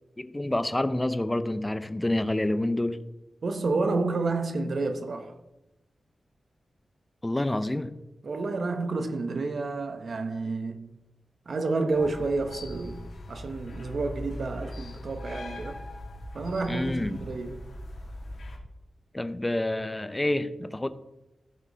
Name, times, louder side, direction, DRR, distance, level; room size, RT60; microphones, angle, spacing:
voice 1, 0.2-3.0 7.2-7.9 16.7-17.2 19.1-20.9, left 1 dB, 15° left, 0.6 m, -28 dB
voice 2, 3.4-5.3 8.2-10.9 11.5-15.8 16.3-17.6, right 3 dB, 60° right, 1.1 m, -30 dB
sound 1, 11.9-18.6, left 1 dB, 85° left, 2.0 m, -40 dB
14.5 x 5.2 x 4.1 m
wide cardioid pair, 110°, 0 cm